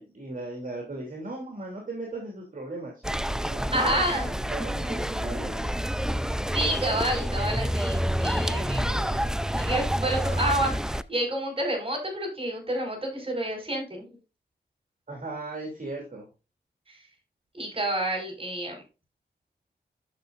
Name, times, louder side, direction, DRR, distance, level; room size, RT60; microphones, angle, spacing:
voice 1, 0.0-2.9 3.5-5.7 15.1-16.3, right 2 dB, 45° right, 0 dB, 3.0 m, -37 dB
sound 1, 3.0-11.0, equal, 5° right, 0.5 m, -28 dB
voice 2, 3.7-4.3 6.5-9.2 9.6-14.0 16.9-17.0 17.5-18.8, right 1 dB, 30° right, 2 dB, 5.3 m, -29 dB
12.0 x 6.7 x 2.5 m, 0.29 s
cardioid pair, 45°, 18 cm